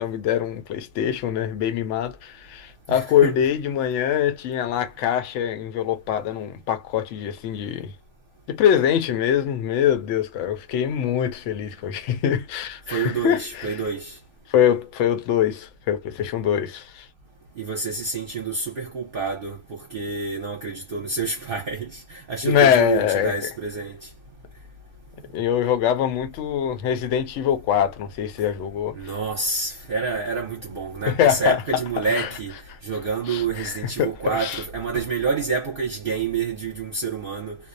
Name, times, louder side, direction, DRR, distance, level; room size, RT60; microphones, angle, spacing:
voice 1, 0.0-7.9 8.5-13.8 14.5-17.1 22.4-23.3 25.3-29.0 31.1-31.6 32.0-32.3 33.3-34.6, left 9 dB, 70° left, 0.9 m, -23 dB
voice 2, 2.9-3.4 12.9-14.2 17.6-24.1 28.9-32.6 32.8-37.6, right 4 dB, 50° right, 0.8 m, -28 dB
2.6 x 2.0 x 2.4 m
omnidirectional pair, 1.4 m